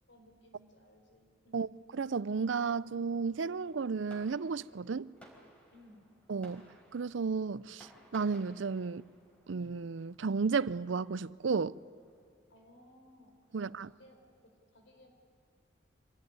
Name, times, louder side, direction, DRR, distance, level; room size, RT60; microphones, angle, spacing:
voice 1, 0.1-1.7 5.7-6.0 12.5-15.1, equal, 60° left, 4.4 m, -60 dB
voice 2, 1.5-5.1 6.3-6.6 6.9-9.0 9.5-11.8 13.5-13.9, right 5 dB, 70° right, 0.5 m, -33 dB
Fireworks, 2.9-12.2, equal, 5° left, 3.9 m, -61 dB
25.0 x 17.0 x 9.6 m
head